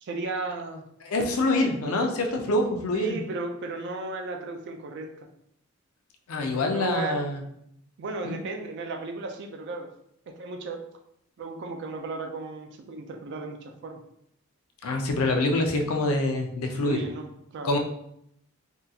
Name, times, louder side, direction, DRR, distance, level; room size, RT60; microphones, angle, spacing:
voice 1, 0.0-0.8 2.9-5.1 6.5-7.2 8.0-9.9 10.3-10.8 11.4-14.0 16.8-17.7, right 3 dB, 50° right, 4 dB, 0.3 m, -35 dB
voice 2, 1.0-3.2 6.3-7.4 8.2-8.3 14.8-17.0 17.6-17.8, left 2 dB, 75° left, 3 dB, 0.5 m, -25 dB
3.6 x 2.3 x 2.7 m, 0.74 s
head